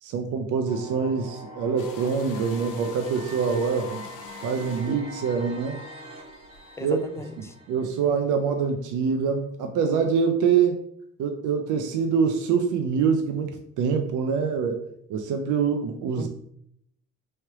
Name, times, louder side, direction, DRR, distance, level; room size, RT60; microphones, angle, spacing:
voice 1, 0.0-4.0 4.4-5.8 6.8-7.0 7.7-10.8 11.2-14.8 15.1-16.3, right 6 dB, 85° right, 5 dB, 0.5 m, -25 dB
sound 1, 0.7-8.6, equal, 20° right, 1.0 m, -43 dB
sound 2, 1.8-6.9, left 6 dB, 90° left, 0.7 m, -47 dB
voice 2, 6.8-7.5 16.2-16.3, left 2 dB, 10° left, 8 dB, 0.4 m, -36 dB
3.2 x 2.9 x 4.6 m, 0.72 s
cardioid pair, 90°, 30 cm